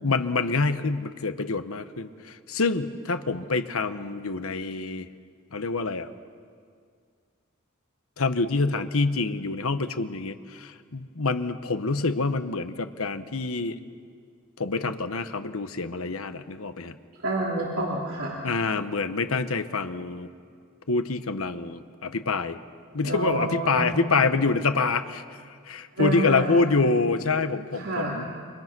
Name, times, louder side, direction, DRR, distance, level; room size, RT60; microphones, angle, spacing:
voice 1, 0.0-5.1 5.5-6.1 8.2-13.8 14.6-17.0 18.4-20.3 20.9-22.6 22.9-25.2 25.6-28.3, left 3 dB, 80° left, 10 dB, 1.1 m, -26 dB
voice 2, 17.2-18.4 23.0-24.1 26.0-26.7 27.7-28.2, right 2 dB, 80° right, -4 dB, 3.2 m, -28 dB
29.5 x 25.5 x 6.2 m, 2.1 s
head